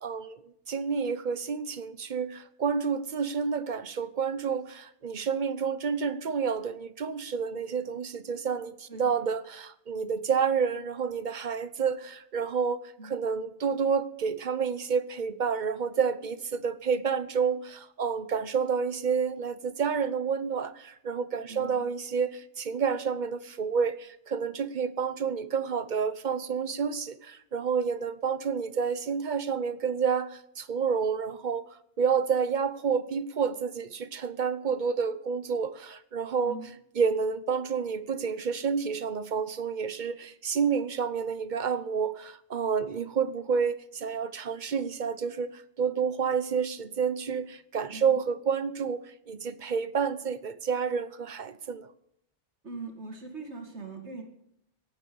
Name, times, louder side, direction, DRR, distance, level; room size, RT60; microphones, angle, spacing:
voice 1, 0.0-31.7 32.0-36.6 37.0-49.0 49.3-51.9, right 6 dB, 45° right, 1.0 m, -29 dB
voice 2, 8.9-9.2 13.0-13.2 21.5-21.9 36.4-36.7 47.9-48.2 52.6-54.2, right 3 dB, 85° right, 2.9 m, -41 dB
17.0 x 9.2 x 7.1 m
omnidirectional pair, 1.1 m